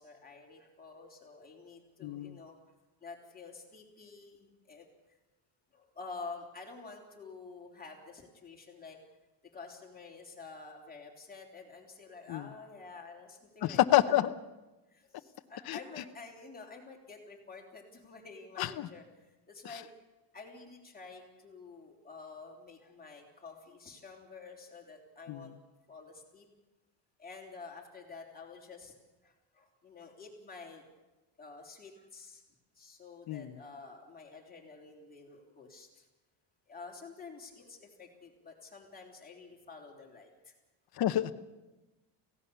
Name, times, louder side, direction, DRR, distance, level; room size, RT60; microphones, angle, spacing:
voice 1, 0.0-2.6 3.0-5.2 5.7-9.0 9.5-13.8 14.1-14.2 14.9-19.9 20.3-25.5 25.9-26.5 27.2-28.9 29.2-31.0 31.4-32.4 32.7-36.1 36.7-40.5, left 4 dB, 20° left, 0 dB, 3.5 m, -49 dB
voice 2, 2.0-2.4 12.3-12.4 13.6-14.3 15.7-15.8 18.6-18.9 25.3-25.5 33.3-33.6 41.0-41.3, left 13 dB, 45° left, 7 dB, 1.0 m, -28 dB
28.5 x 17.0 x 6.9 m, 1.1 s
cardioid pair, 165°, 50 cm